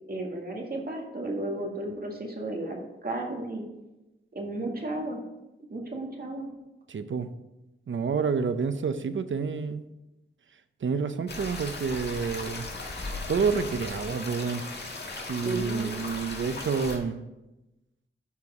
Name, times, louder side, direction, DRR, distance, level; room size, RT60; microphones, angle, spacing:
voice 1, 0.1-3.7 4.3-5.2 5.7-6.5 15.4-15.9, right 2 dB, 50° right, 1 dB, 1.9 m, -33 dB
voice 2, 6.9-7.3 7.9-9.9 10.8-12.7 13.3-14.6 15.2-17.2, right 5 dB, 70° right, 11 dB, 0.7 m, -29 dB
sound 1, 11.3-17.0, left 3 dB, 55° left, 1.7 m, -37 dB
12.5 x 4.7 x 4.8 m, 1.0 s
wide cardioid pair, 80°, 21 cm